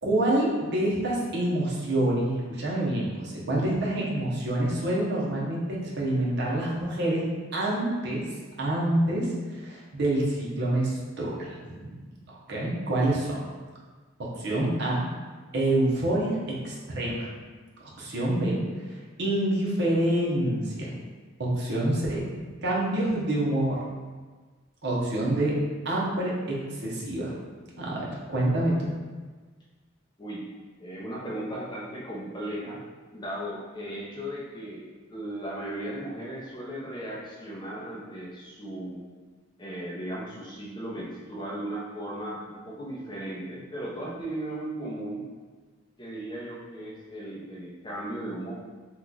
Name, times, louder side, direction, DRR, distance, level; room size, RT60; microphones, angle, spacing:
voice 1, 0.0-7.2 7.5-8.3 8.6-12.0 12.3-13.4 14.2-15.0 15.5-17.3 18.0-18.6 19.2-20.9 21.4-22.2 22.6-23.8 24.8-25.5 25.8-27.3 27.8-28.9, right 1 dB, 55° right, -4 dB, 0.8 m, -27 dB
voice 2, 30.2-30.5 30.8-32.8 33.1-39.0 39.6-45.3 46.0-48.5, right 1 dB, 20° left, -5 dB, 0.6 m, -36 dB
2.9 x 2.3 x 3.8 m, 1.4 s
head